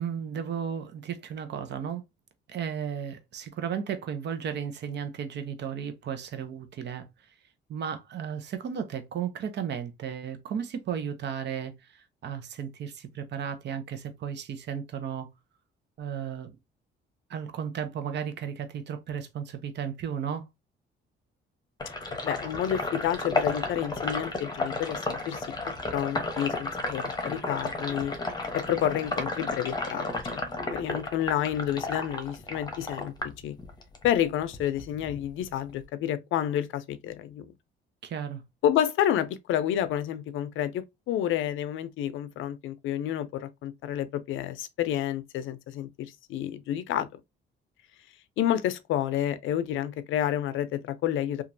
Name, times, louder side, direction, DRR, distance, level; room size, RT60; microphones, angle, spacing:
voice 1, 0.0-2.0 2.5-7.1 7.7-15.3 16.0-16.5 17.3-20.5 38.0-38.4, right 8 dB, 60° right, 0.7 m, -34 dB
Sink (filling or washing), 21.8-34.1 34.4-35.8, left 2 dB, 20° left, 0.8 m, -33 dB
voice 2, 22.2-25.5 25.9-28.1 28.5-33.1 33.4-33.6 34.0-37.5 38.6-47.1 48.4-51.4, left 11 dB, 80° left, 0.5 m, -29 dB
2.9 x 2.4 x 2.6 m
cardioid pair, 90°, 20 cm